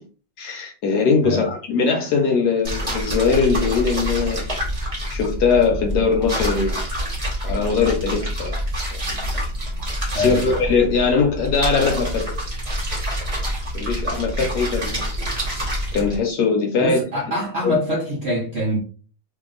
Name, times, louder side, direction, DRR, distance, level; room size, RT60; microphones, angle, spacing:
voice 1, 0.4-4.5 5.1-6.8 7.4-8.5 8.9-9.2 10.2-12.3 13.7-15.1 15.9-17.0 17.6-17.8, left 5 dB, 65° left, 2 dB, 1.1 m, -21 dB
sound 1, 2.6-16.2, equal, 25° right, 0.9 m, -27 dB
voice 2, 10.1-10.7 16.8-18.8, equal, 50° right, -5 dB, 0.8 m, -24 dB
2.9 x 2.8 x 3.8 m, 0.39 s
omnidirectional pair, 2.1 m